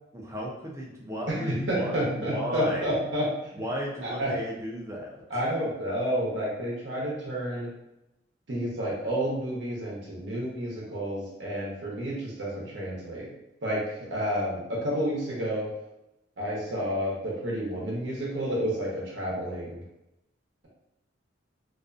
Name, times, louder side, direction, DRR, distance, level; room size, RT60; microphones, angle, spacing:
voice 1, 0.1-3.0 3.6-5.2, equal, 15° right, -3 dB, 0.5 m, -35 dB
voice 2, 1.3-3.3 4.0-4.4 5.3-7.7 8.5-13.3 13.6-13.8 14.1-15.7 16.4-19.8, equal, 70° right, -5 dB, 0.7 m, -30 dB
2.4 x 2.2 x 2.5 m, 0.88 s
head